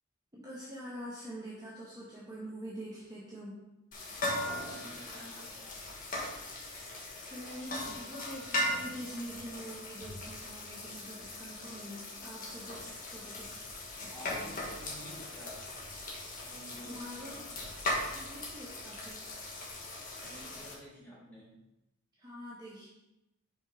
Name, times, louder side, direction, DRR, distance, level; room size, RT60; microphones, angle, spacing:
voice 1, 0.3-3.6 7.3-13.7 14.0-14.8 16.8-17.6 18.0-19.2 22.2-22.9, equal, 20° right, -7 dB, 1.2 m, -45 dB
sound 1, 3.9-20.7, left 1 dB, 40° left, 1.4 m, -39 dB
voice 2, 4.4-5.8 14.1-15.6 16.4-17.5 20.2-21.5, equal, 10° left, -8 dB, 2.3 m, -51 dB
5.4 x 5.0 x 4.8 m, 0.92 s
head